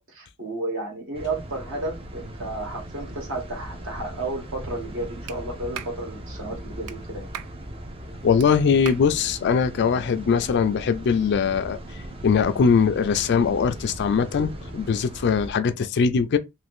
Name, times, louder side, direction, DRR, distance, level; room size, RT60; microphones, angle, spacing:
voice 1, 0.0-7.3, right 2 dB, 60° right, 1.2 m, -32 dB
sound 1, 1.1-15.5, right 1 dB, 25° right, 0.5 m, -38 dB
Clapping, 5.3-5.4 5.7-6.0 6.9-7.0 7.3-7.6 8.4-8.5 8.9-9.1, right 10 dB, 85° right, 0.3 m, -36 dB
voice 2, 8.2-11.8 12.2-16.4, left 6 dB, 50° left, 0.3 m, -21 dB
2.5 x 2.5 x 3.4 m
head